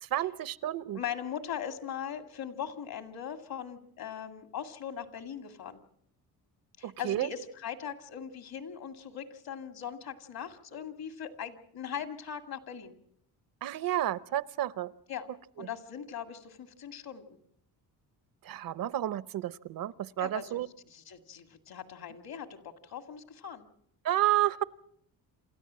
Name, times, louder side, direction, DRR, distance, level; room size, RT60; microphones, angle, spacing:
voice 1, 0.0-1.0 6.8-7.3 13.6-14.9 15.6-15.7 18.4-20.7 24.0-24.6, right 13 dB, 60° right, 18 dB, 0.7 m, -31 dB
voice 2, 0.9-5.8 6.8-12.9 15.1-15.3 15.6-17.4 20.2-23.6, left 8 dB, 65° left, 8 dB, 2.2 m, -40 dB
28.0 x 13.5 x 7.5 m, 0.71 s
cardioid pair, 95°, 38 cm